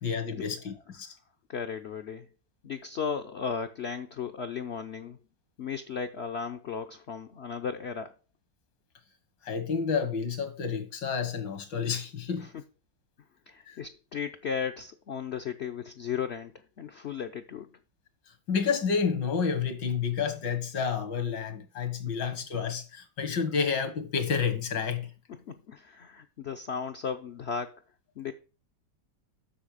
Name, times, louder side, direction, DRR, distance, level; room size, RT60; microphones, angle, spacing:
voice 1, 0.0-1.2 9.4-12.5 13.7-13.8 18.5-25.1, left 6 dB, 80° left, 2.2 m, -30 dB
voice 2, 1.5-2.3 2.6-5.2 5.6-8.1 12.4-12.6 13.5-17.7 25.5-27.8 28.2-28.3, left 6 dB, 65° left, 0.6 m, -35 dB
7.7 x 6.5 x 4.9 m
omnidirectional pair, 1.9 m